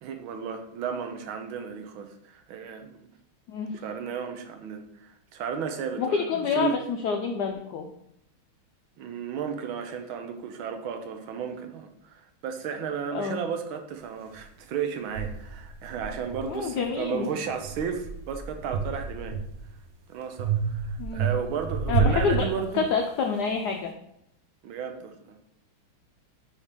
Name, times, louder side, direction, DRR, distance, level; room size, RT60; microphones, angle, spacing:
voice 1, 0.0-3.1 3.7-6.8 9.0-19.4 20.1-22.9 24.6-25.5, right 7 dB, 75° right, 6 dB, 1.5 m, -34 dB
voice 2, 6.0-7.9 13.1-13.4 16.4-17.3 21.0-21.3 21.9-22.5 22.7-23.9, left 5 dB, 80° left, 3 dB, 0.9 m, -27 dB
sound 1, 14.3-14.4 15.1-17.0 17.5-19.8 20.4-23.2, right 6 dB, 60° right, 1.0 m, -30 dB
5.0 x 4.2 x 5.1 m, 0.79 s
omnidirectional pair, 2.3 m